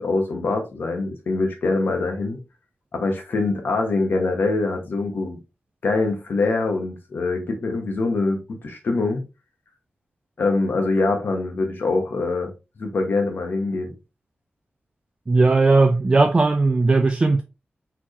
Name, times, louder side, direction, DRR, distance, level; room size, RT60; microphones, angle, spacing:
voice 1, 0.0-2.4 2.9-5.4 5.8-9.2 10.4-12.5 12.8-13.9, left 3 dB, 65° left, 1.4 m, -24 dB
voice 2, 15.3-17.4, right 3 dB, 25° right, 0.4 m, -17 dB
4.5 x 3.7 x 3.1 m
wide cardioid pair, 165°, 4 cm